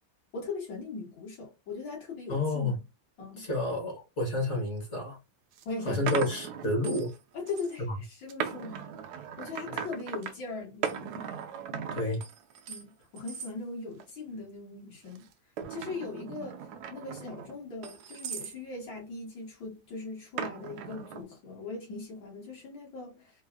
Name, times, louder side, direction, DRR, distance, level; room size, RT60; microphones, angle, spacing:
voice 1, 0.3-2.8 3.2-3.5 5.7-6.1 7.3-7.9 8.2-9.0 9.4-11.3 11.7-12.0 12.7-15.3 15.7-16.6 16.9-23.3, left 3 dB, 70° left, 2.3 m, -40 dB
voice 2, 2.3-2.8 3.4-5.2 5.8-7.1 7.8-7.9 9.7-9.8 11.9-12.2, left 2 dB, 45° left, 1.2 m, -30 dB
sound 1, 5.0-5.1 5.6-7.2 7.5-7.8 8.3-10.3 10.8-12.8 13.2-13.5 14.0-14.4 15.1-18.6 20.4-21.2, right 8 dB, 70° right, 1.0 m, -38 dB
4.4 x 2.4 x 2.3 m
omnidirectional pair, 2.1 m